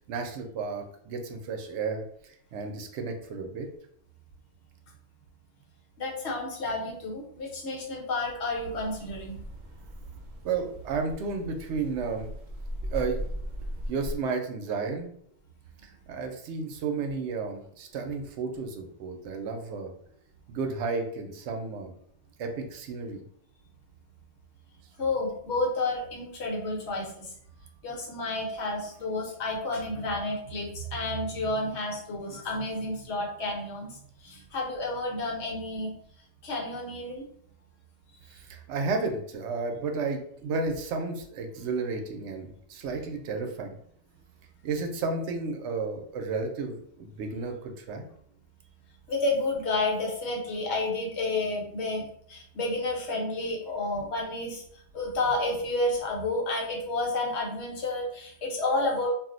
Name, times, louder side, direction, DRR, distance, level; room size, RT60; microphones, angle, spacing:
voice 1, 0.1-3.7 10.4-12.3 12.9-13.3 13.9-15.1 15.8-19.9 20.5-21.9 22.4-23.2 38.3-43.7 44.6-48.1, right 4 dB, 80° right, 3 dB, 0.9 m, -32 dB
voice 2, 6.0-9.4 25.0-27.3 27.8-35.9 36.4-37.3 49.1-52.0 52.3-54.6 54.9-59.1, left 2 dB, 75° left, -1 dB, 1.1 m, -30 dB
sound 1, 8.6-14.2, equal, 55° right, 0.4 m, -38 dB
2.5 x 2.0 x 3.7 m, 0.66 s
omnidirectional pair, 1.2 m